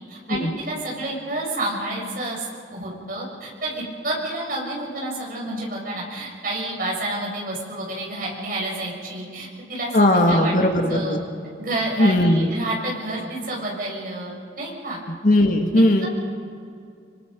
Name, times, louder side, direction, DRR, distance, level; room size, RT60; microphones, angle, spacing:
voice 1, 0.0-10.0 10.2-10.5 10.9-11.2 11.6-15.0 16.0-16.1, right 1 dB, 50° right, -2 dB, 6.9 m, -29 dB
voice 2, 9.9-11.2 12.0-12.5 15.2-16.1, left 1 dB, 45° left, 3 dB, 1.9 m, -18 dB
26.5 x 25.0 x 5.3 m, 2.4 s
head